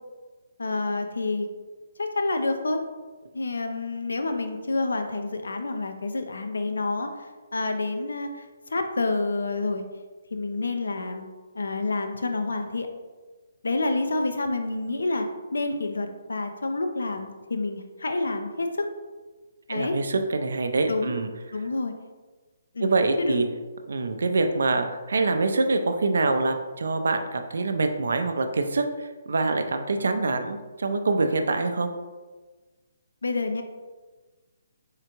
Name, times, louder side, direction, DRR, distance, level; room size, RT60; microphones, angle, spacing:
voice 1, 0.6-1.5 2.0-2.8 3.3-7.1 7.5-9.8 10.3-11.2 11.5-12.9 13.6-15.3 15.5-18.9 19.7-20.0 20.9-21.2 21.5-21.9 22.7-23.4 33.2-33.6, left 3 dB, 80° left, 6 dB, 0.4 m, -28 dB
voice 2, 19.7-21.3 22.8-23.5 23.9-31.9, right 3 dB, 70° right, 6 dB, 0.4 m, -25 dB
3.6 x 3.3 x 2.9 m, 1.3 s
figure-of-eight pair, 140°, 0 cm